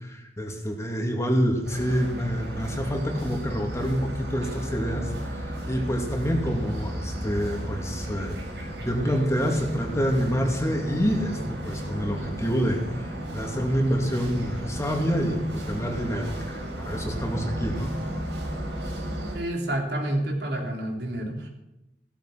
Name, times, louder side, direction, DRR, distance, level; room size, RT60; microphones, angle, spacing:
voice 1, 0.0-12.8 13.3-17.9, equal, 15° left, 2 dB, 2.5 m, -27 dB
sound 1, 1.6-19.4, equal, 85° right, 5.5 m, -34 dB
voice 2, 19.3-21.5, right 1 dB, 65° right, 1 dB, 3.8 m, -29 dB
16.0 x 13.0 x 5.9 m, 0.89 s
head